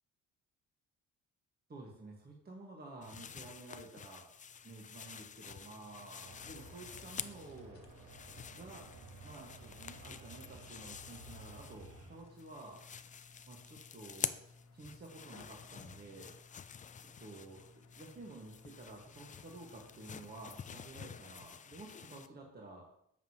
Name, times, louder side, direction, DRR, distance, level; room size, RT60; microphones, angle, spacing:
voice 1, 1.7-4.3 4.6-7.9 8.5-8.9 9.2-12.8 13.5-14.4 14.7-16.3 17.0-17.6 17.9-22.9, right 2 dB, 30° right, -1 dB, 1.5 m, -51 dB
sound 1, 3.0-7.6 7.9-12.1 12.4-22.3, left 7 dB, 25° left, 0.3 m, -48 dB
sound 2, 4.3-21.2, left 3 dB, 60° left, 1.1 m, -60 dB
sound 3, 6.2-12.2, right 3 dB, 85° right, 1.5 m, -55 dB
8.9 x 6.6 x 2.9 m, 0.74 s
cardioid pair, 90°, 30 cm